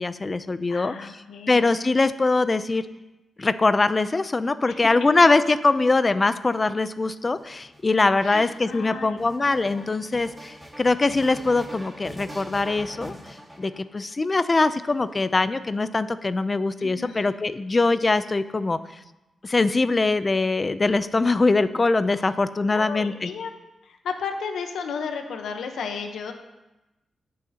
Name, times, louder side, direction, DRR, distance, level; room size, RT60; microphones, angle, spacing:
voice 1, 0.0-1.2 1.5-2.8 3.4-13.1 13.6-18.8 19.4-23.3, left 3 dB, 30° left, 13 dB, 0.5 m, -22 dB
voice 2, 0.7-1.7 4.7-4.8 8.2-9.8 16.8-17.3 22.7-23.5 23.8-26.3, left 5 dB, 90° left, 5 dB, 1.0 m, -34 dB
sound 1, 6.3-14.3 15.1-15.9, equal, 10° right, 1.7 m, -43 dB
17.5 x 6.4 x 2.9 m, 0.99 s
cardioid pair, 80°, 0 cm